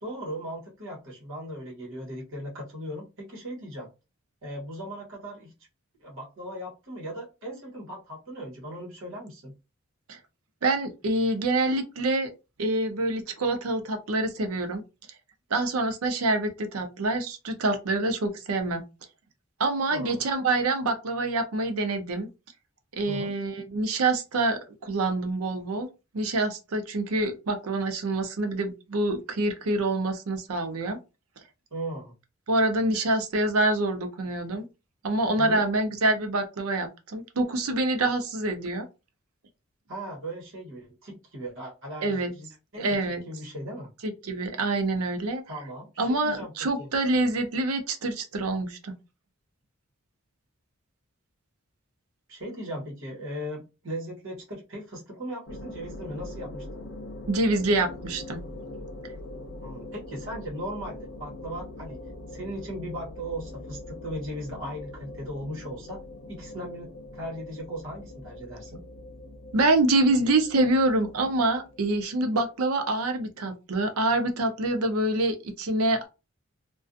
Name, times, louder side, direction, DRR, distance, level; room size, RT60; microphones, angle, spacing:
voice 1, 0.0-3.9 4.4-5.5 6.0-9.5 19.9-20.2 23.1-23.3 31.7-32.1 35.3-35.6 39.9-43.0 43.3-43.9 45.5-46.5 46.8-46.9 52.3-56.8 59.6-62.0 62.3-66.0 66.3-68.8, equal, 65° right, -2 dB, 1.1 m, -38 dB
voice 2, 10.6-12.3 12.6-14.8 15.5-18.8 19.6-22.3 22.9-25.9 26.1-31.0 32.5-34.7 35.0-38.9 42.0-42.3 42.8-43.2 44.0-45.4 46.0-48.9 57.3-58.4 69.5-76.1, right 2 dB, 80° right, 6 dB, 0.6 m, -26 dB
sound 1, 55.5-72.5, left 2 dB, 55° left, 0.5 m, -42 dB
2.4 x 2.3 x 2.5 m, 0.28 s
head